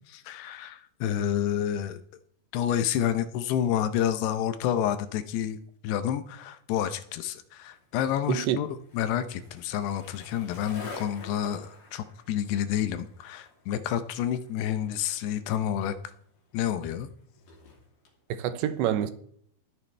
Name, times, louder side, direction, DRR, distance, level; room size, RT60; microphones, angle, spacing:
voice 1, 0.1-2.0 2.5-8.7 8.9-16.0 16.5-17.1, left 10 dB, 75° left, 2.7 m, -29 dB
Skateboard, 7.6-18.2, left 3 dB, 50° left, 4.2 m, -49 dB
voice 2, 8.3-8.6 18.3-19.1, right 11 dB, 80° right, 3.0 m, -27 dB
20.5 x 9.6 x 3.3 m
omnidirectional pair, 5.2 m